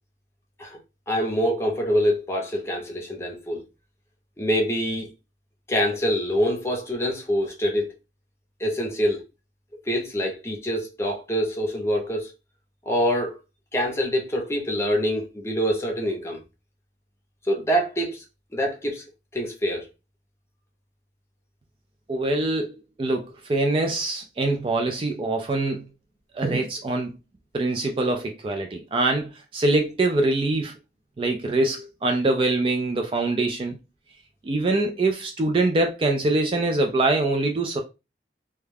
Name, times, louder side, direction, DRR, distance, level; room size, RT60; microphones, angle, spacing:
voice 1, 1.1-3.6 4.4-5.1 5.7-7.9 8.6-9.2 9.9-12.3 12.9-13.4 13.7-16.4 17.4-18.2 18.5-19.0 19.3-19.9, equal, 15° left, 0.6 m, -25 dB
voice 2, 22.1-25.8 26.3-27.1 27.5-30.7 31.2-33.8 34.4-37.8, right 2 dB, 30° right, 0.3 m, -24 dB
2.3 x 2.1 x 3.2 m
head